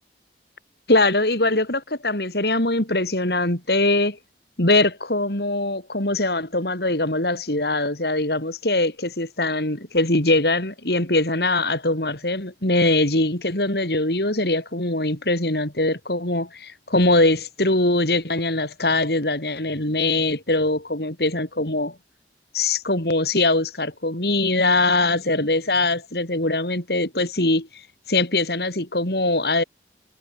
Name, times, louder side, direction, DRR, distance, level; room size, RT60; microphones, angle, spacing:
voice 1, 0.9-4.2 4.6-21.9 22.5-27.7 28.1-29.6, left 2 dB, 60° left, 4.1 m, -22 dB
head